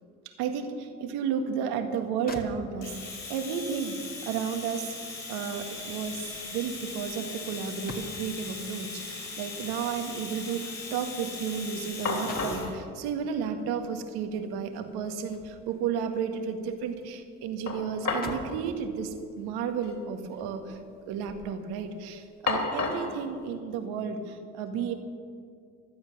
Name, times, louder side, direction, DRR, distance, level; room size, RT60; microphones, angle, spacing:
voice 1, 0.2-5.0 5.3-20.8 21.1-24.9, right 6 dB, 70° right, 7 dB, 1.7 m, -33 dB
sound 1, 1.9-2.0 2.3-3.1 4.5-8.5 9.6-11.7 12.0-12.7 14.2-15.8 16.2-17.2 17.5-17.6 18.0-18.7 19.4-19.6, left 3 dB, 20° left, 2.1 m, -46 dB
Domestic sounds home sounds, 2.8-12.7, left 4 dB, 90° left, 3.8 m, -40 dB
sound 2, 6.1-6.5 6.9-8.0 11.5-11.6 12.0-12.7 13.8-13.9 14.3-14.4 17.7-18.4 18.7-18.8 19.7-19.9 20.2-20.8 21.2-21.6 22.5-23.2, left 3 dB, 45° left, 4.1 m, -32 dB
15.0 x 12.5 x 6.4 m, 2.3 s
hypercardioid pair, 60°, 40 cm